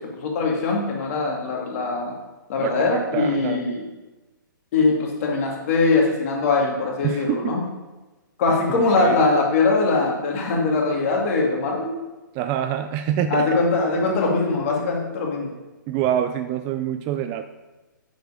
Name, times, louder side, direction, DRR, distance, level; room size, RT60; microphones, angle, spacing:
voice 1, 0.1-2.2 2.5-3.8 4.7-7.6 8.4-11.9 13.3-15.5, left 3 dB, 45° left, 0 dB, 2.3 m, -22 dB
voice 2, 2.6-3.7 7.0-7.6 8.7-9.2 12.3-13.6 15.9-17.4, right 10 dB, 25° right, 9 dB, 0.3 m, -26 dB
7.9 x 7.2 x 5.0 m, 1.2 s
hypercardioid pair, 140°, 11 cm